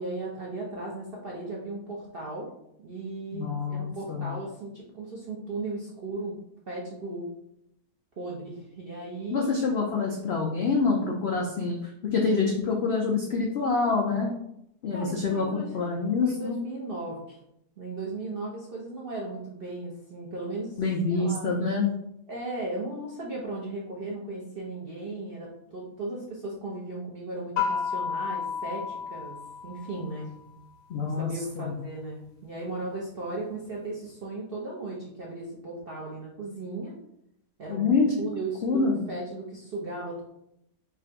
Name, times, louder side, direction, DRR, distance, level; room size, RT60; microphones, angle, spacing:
voice 1, 0.0-2.5 2.8-6.4 6.7-7.3 8.2-9.6 14.9-15.7 16.2-17.4 17.8-20.8 21.1-21.5 22.3-29.4 29.6-30.3 31.0-36.9 37.6-40.2, right 2 dB, 55° right, -4 dB, 0.6 m, -36 dB
voice 2, 3.3-4.3 9.3-11.8 12.1-14.3 14.8-16.6 20.8-21.9 30.9-31.3 31.6-31.8 37.7-38.1 38.6-39.0, left 4 dB, 80° left, -1 dB, 0.5 m, -26 dB
sound 1, 27.6-30.3, left 6 dB, 45° left, 0.8 m, -32 dB
3.7 x 2.5 x 4.4 m, 0.78 s
omnidirectional pair, 1.8 m